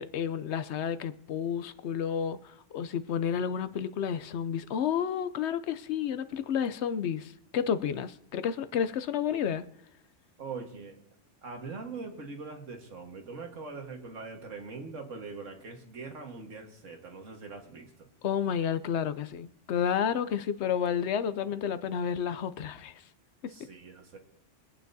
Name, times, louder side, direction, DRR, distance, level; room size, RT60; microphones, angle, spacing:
voice 1, 0.0-9.7 18.2-23.0 23.4-23.5, left 8 dB, 70° left, 0.8 m, -31 dB
voice 2, 10.4-11.0 11.4-17.9 23.5-24.2, right 4 dB, 85° right, 1.8 m, -42 dB
24.0 x 8.9 x 2.7 m
omnidirectional pair, 1.3 m